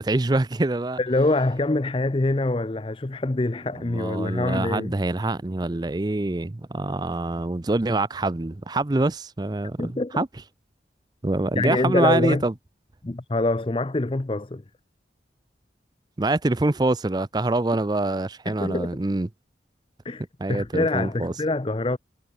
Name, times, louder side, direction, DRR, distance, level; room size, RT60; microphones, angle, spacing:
voice 1, 0.0-1.0 3.8-10.3 11.2-12.5 16.2-19.3 20.4-21.3, right 2 dB, 20° right, 0.5 m, -25 dB
voice 2, 1.0-4.9 9.8-10.2 11.6-12.4 13.0-14.6 18.5-18.9 20.0-22.0, left 2 dB, 30° left, 0.6 m, -25 dB
head